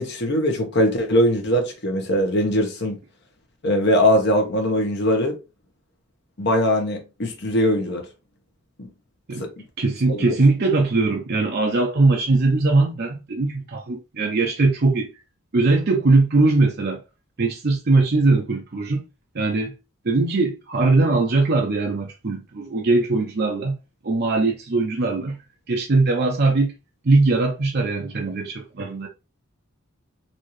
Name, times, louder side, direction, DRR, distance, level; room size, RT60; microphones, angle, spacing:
voice 1, 0.0-3.0 3.6-5.4 6.4-8.1 8.8-8.9 9.4-9.5 10.1-10.4, equal, 55° left, 1.0 m, -21 dB
voice 2, 9.8-15.1 15.5-17.0 17.4-19.0 19.3-19.7 20.0-23.8 24.0-25.4 25.7-26.7 27.0-29.1, right 3 dB, 50° right, 0.6 m, -20 dB
4.2 x 2.7 x 3.1 m
head